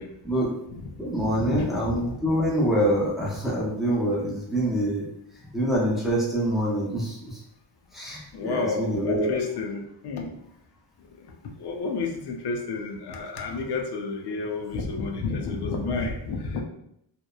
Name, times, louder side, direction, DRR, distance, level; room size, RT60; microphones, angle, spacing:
voice 1, 0.4-0.8 1.2-2.1 8.3-10.3 11.6-16.6, left 4 dB, 70° left, 2 dB, 0.5 m, -31 dB
voice 2, 1.0-5.0 5.5-7.2 7.9-9.4, right 1 dB, ahead, -5 dB, 0.5 m, -25 dB
2.9 x 2.0 x 2.3 m, 0.75 s
cardioid pair, 125°, 41 cm